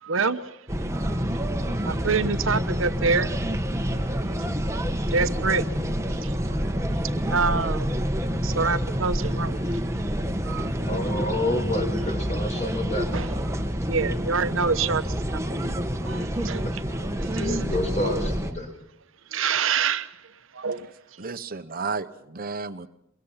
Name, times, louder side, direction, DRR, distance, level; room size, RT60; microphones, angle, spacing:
voice 1, 0.0-0.7 0.9-1.4 1.7-3.3 3.8-4.5 5.0-5.7 6.1-7.9 8.4-10.0 10.4-10.9 13.1-15.8 16.0-16.7 17.0-18.3 19.3-20.2 20.5-21.2, right 5 dB, 85° right, 11 dB, 1.0 m, -28 dB
sound 1, 0.7-18.5, equal, 15° right, 1.4 m, -27 dB
voice 2, 10.9-13.1 16.6-16.7 17.3-18.7, left 1 dB, 35° left, 5 dB, 4.6 m, -29 dB
voice 3, 21.2-22.9, right 4 dB, 50° right, 9 dB, 1.0 m, -32 dB
24.0 x 22.5 x 5.8 m, 0.83 s
head